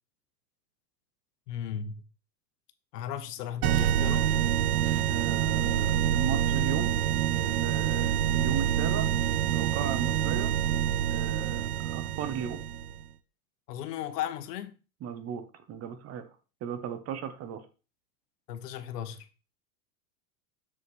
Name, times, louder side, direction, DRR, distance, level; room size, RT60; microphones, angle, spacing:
voice 1, 1.5-2.0 2.9-4.5 13.7-14.7 18.5-19.3, left 10 dB, 75° left, 1.2 m, -36 dB
sound 1, 3.6-13.0, right 10 dB, 65° right, 0.8 m, -27 dB
voice 2, 5.0-6.9 7.3-9.1 9.5-10.5 11.1-12.6 15.0-16.3 16.6-17.6, right 8 dB, 30° right, 0.9 m, -36 dB
7.4 x 6.8 x 3.2 m
supercardioid pair, 125°, 48 cm